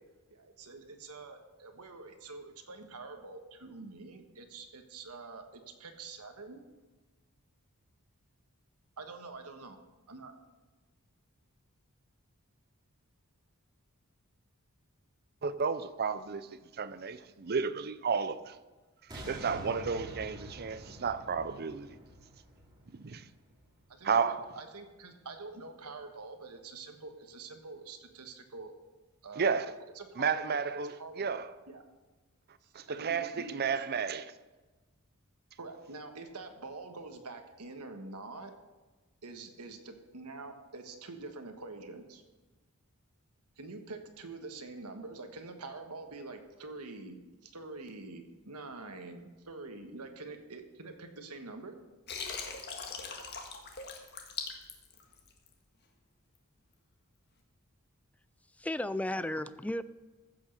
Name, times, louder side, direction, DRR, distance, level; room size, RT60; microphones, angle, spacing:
voice 1, 0.3-6.6 9.0-9.8 10.1-10.3 23.9-28.7 29.2-29.6 29.9-30.6 31.0-31.3 31.7-31.8 32.6-33.7 35.6-38.5 39.2-42.2 43.6-51.8, right 3 dB, 90° right, 1.4 m, -46 dB
voice 2, 15.4-16.5 16.8-18.6 19.1-21.9 22.9-23.3 24.0-24.4 29.4-29.7 30.2-30.9 31.2-31.5 32.7-34.3, right 5 dB, 45° right, 0.6 m, -32 dB
sound 1, 19.1-24.2 24.7-24.8, equal, 20° right, 2.4 m, -48 dB
Water, 52.1-55.5, left 5 dB, 50° left, 1.7 m, -40 dB
voice 3, 58.6-59.8, left 1 dB, 5° left, 0.3 m, -34 dB
15.0 x 6.2 x 6.6 m
head